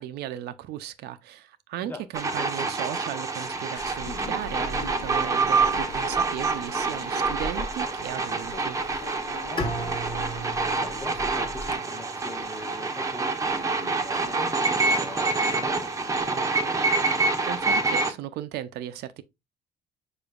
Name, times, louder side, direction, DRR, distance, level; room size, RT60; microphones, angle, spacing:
voice 1, 0.0-8.8 17.5-19.2, right 12 dB, 75° right, 0.4 m, -36 dB
sound 1, 2.1-18.1, right 3 dB, 20° right, 0.6 m, -27 dB
sound 2, 3.7-11.7, left 3 dB, 70° left, 0.8 m, -40 dB
voice 2, 9.5-10.0 10.8-16.7, left 1 dB, 10° left, 0.8 m, -41 dB
Bowed string instrument, 9.6-12.6, right 1 dB, 30° left, 1.2 m, -35 dB
5.1 x 4.3 x 2.3 m
cardioid pair, 110°, 17 cm